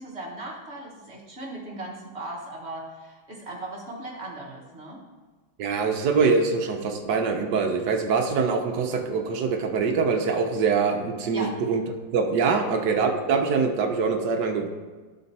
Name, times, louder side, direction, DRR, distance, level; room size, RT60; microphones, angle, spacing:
voice 1, 0.0-5.0 11.3-11.6 12.5-12.7, right 1 dB, 40° right, -3 dB, 1.3 m, -38 dB
voice 2, 5.6-11.8 12.1-14.7, right 5 dB, 70° right, 4 dB, 1.4 m, -24 dB
12.5 x 4.3 x 4.1 m, 1.3 s
omnidirectional pair, 2.0 m